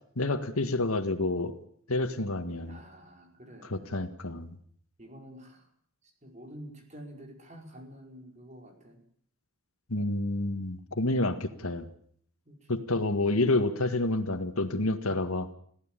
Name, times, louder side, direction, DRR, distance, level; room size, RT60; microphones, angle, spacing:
voice 1, 0.2-1.5 1.9-2.8 3.6-4.6 9.9-11.9 12.7-15.5, left 2 dB, 85° left, 9 dB, 1.8 m, -29 dB
voice 2, 2.6-3.9 5.0-5.7 6.0-9.0 9.9-10.1 12.5-12.7, equal, 35° right, 3 dB, 4.7 m, -49 dB
21.5 x 15.0 x 9.1 m, 0.65 s
head